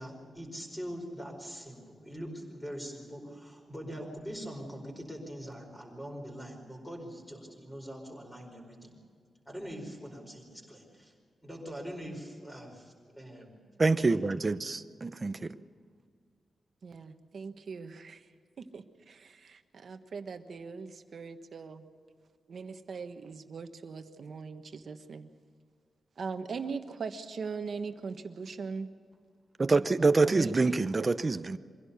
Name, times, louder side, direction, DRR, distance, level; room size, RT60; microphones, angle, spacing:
voice 1, 0.0-8.9 9.5-11.1 11.4-13.6 13.9-14.4 15.4-15.5, equal, 5° left, 4.7 m, -43 dB
voice 2, 13.8-15.5 29.6-31.6, right 3 dB, 25° right, 0.7 m, -26 dB
voice 3, 16.8-18.2 18.6-21.8 22.5-25.3 26.2-28.9 30.2-30.8, right 5 dB, 50° right, 1.3 m, -40 dB
24.0 x 16.5 x 7.0 m
wide cardioid pair, 165°, 0 cm